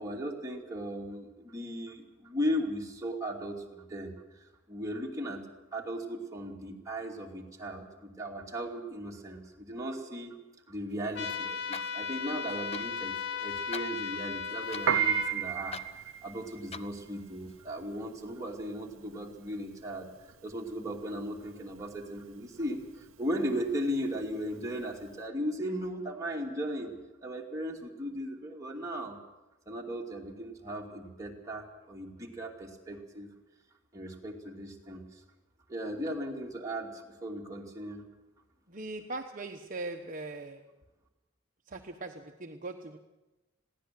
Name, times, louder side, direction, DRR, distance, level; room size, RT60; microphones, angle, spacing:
voice 1, 0.0-4.1 4.7-5.4 5.7-10.4 10.7-15.8 16.2-20.1 20.4-26.9 27.2-29.2 29.7-33.3 33.9-35.2 35.7-38.1, equal, 15° right, -1 dB, 2.7 m, -37 dB
sound 1, 10.9-17.6, left 5 dB, 30° left, 0.8 m, -48 dB
sound 2, 11.1-15.3, left 6 dB, 60° left, 1.2 m, -36 dB
Piano, 14.7-25.1, right 9 dB, 70° right, 0.7 m, -34 dB
voice 2, 38.7-40.6 41.7-43.0, right 2 dB, 40° right, 3 dB, 1.1 m, -40 dB
21.0 x 16.0 x 7.7 m, 1.0 s
head